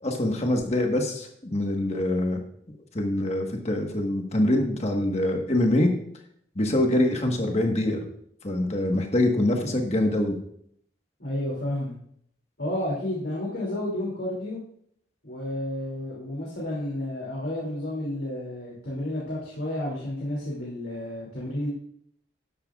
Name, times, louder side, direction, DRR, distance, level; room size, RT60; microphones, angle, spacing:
voice 1, 0.0-2.4 2.9-5.9 6.5-8.0 8.4-10.4, left 1 dB, 35° left, 2 dB, 1.5 m, -24 dB
voice 2, 11.2-11.9 12.6-14.6 15.2-21.7, left 1 dB, 65° left, -6 dB, 2.9 m, -31 dB
12.5 x 10.0 x 2.5 m, 0.68 s
head